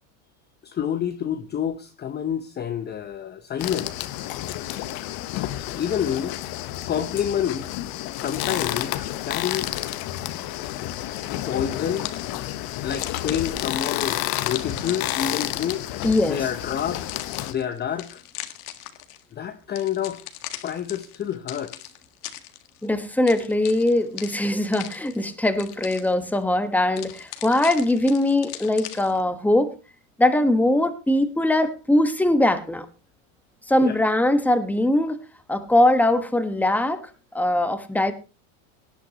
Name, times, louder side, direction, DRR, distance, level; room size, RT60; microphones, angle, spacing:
voice 1, 0.6-4.1 5.7-6.4 6.9-7.8 8.1-9.7 11.5-12.1 12.8-15.8 16.3-17.0 17.5-18.2 19.3-20.2 20.6-21.9 33.8-34.0, left 9 dB, 20° left, 0.9 m, -28 dB
sound 1, 3.6-17.5, left 14 dB, 50° left, 1.3 m, -30 dB
sound 2, 11.7-12.4 12.9-16.5 16.9-19.2 19.7-22.9 23.3-25.3 25.6-26.3 27.0-29.2, left 14 dB, 80° left, 1.8 m, -38 dB
voice 2, 16.0-16.4 22.8-29.7 30.2-32.9 33.7-35.2 35.5-38.1, left 1 dB, 5° left, 1.4 m, -21 dB
18.0 x 11.5 x 3.0 m
supercardioid pair, 125°, 45 cm